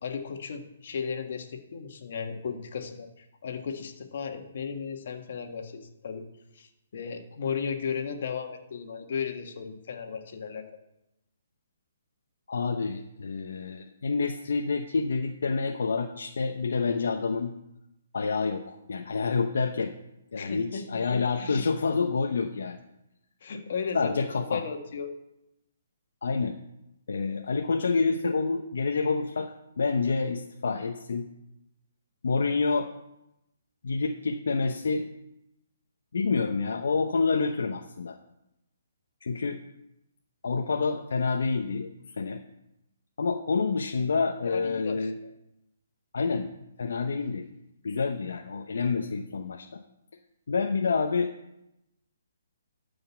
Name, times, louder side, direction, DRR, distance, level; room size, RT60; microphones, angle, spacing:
voice 1, 0.0-6.3 6.5-10.6 20.4-21.7 23.4-25.1 44.4-45.1, left 6 dB, 55° left, 4 dB, 1.7 m, -35 dB
voice 2, 12.5-17.5 18.1-19.9 20.3-22.8 23.9-24.6 26.2-26.6 27.1-31.3 32.2-32.9 33.8-35.1 36.1-38.2 39.2-39.6 40.4-41.9 42.2-42.4 43.2-45.1 46.1-46.5 46.8-47.5 47.8-49.7 50.5-51.3, left 4 dB, 75° left, 4 dB, 0.9 m, -28 dB
13.0 x 5.2 x 7.2 m, 0.89 s
hypercardioid pair, 160°, 0 cm